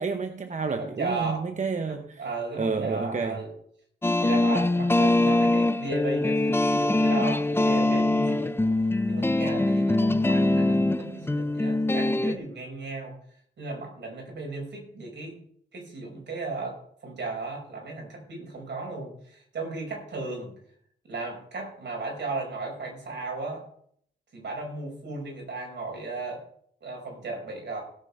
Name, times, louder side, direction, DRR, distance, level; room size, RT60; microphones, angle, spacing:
voice 1, 0.0-2.0 2.6-3.4, right 4 dB, 40° right, 0.9 m, -29 dB
voice 2, 0.7-1.4 1.9-3.5 4.2-8.6 9.1-13.2 13.6-15.4 15.7-20.5 21.0-23.6 24.3-26.4 26.8-27.8, right 3 dB, 65° right, 5.2 m, -35 dB
sound 1, 4.0-12.4, left 2 dB, 10° left, 0.6 m, -23 dB
17.0 x 6.1 x 5.5 m
cardioid pair, 80°, 20 cm